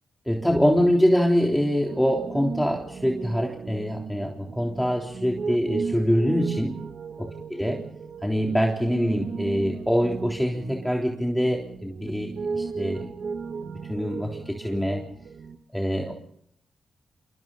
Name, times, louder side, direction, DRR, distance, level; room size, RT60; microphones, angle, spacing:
voice 1, 0.3-6.8 7.2-7.8 8.2-13.1 13.9-15.0 15.7-16.1, equal, 5° left, 0 dB, 3.6 m, -24 dB
Piano, 1.9-15.6, right 5 dB, 65° right, 1.5 m, -35 dB
28.0 x 23.5 x 4.1 m, 0.71 s
supercardioid pair, 40°, 0 cm